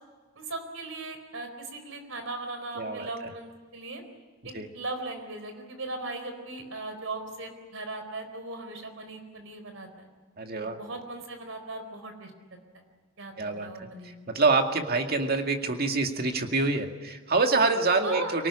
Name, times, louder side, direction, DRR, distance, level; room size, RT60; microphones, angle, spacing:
voice 1, 0.4-4.0 4.4-10.1 10.6-12.3 13.2-14.1 18.0-18.3, right 2 dB, 65° right, 7 dB, 4.3 m, -38 dB
voice 2, 2.8-3.1 4.5-4.7 10.4-10.8 13.4-13.9 14.3-18.5, right 3 dB, 45° right, 5 dB, 2.1 m, -26 dB
25.0 x 18.5 x 10.0 m, 1.4 s
head